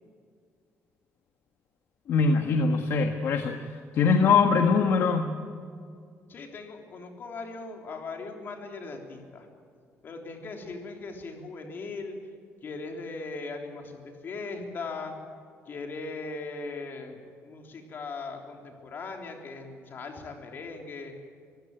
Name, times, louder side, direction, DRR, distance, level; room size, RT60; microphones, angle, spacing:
voice 1, 2.1-3.6 3.9-5.3, left 5 dB, 60° left, 5 dB, 1.5 m, -22 dB
voice 2, 6.3-9.5 10.0-12.2 12.6-15.2 15.7-21.1, left 3 dB, 45° left, 3 dB, 3.6 m, -39 dB
24.5 x 16.0 x 9.1 m, 2.2 s
cardioid pair, 140°, 5 cm